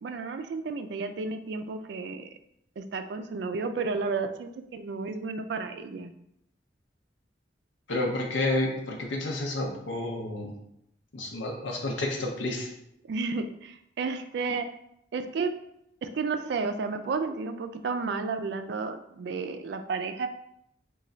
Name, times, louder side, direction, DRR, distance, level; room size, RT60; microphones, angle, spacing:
voice 1, 0.0-2.3 2.8-6.1 13.1-14.7 15.1-15.5 16.0-20.3, right 4 dB, 65° right, 8 dB, 0.3 m, -32 dB
voice 2, 7.9-10.5 11.1-12.7, left 2 dB, 85° left, 0 dB, 0.6 m, -30 dB
3.1 x 2.3 x 3.8 m, 0.76 s
head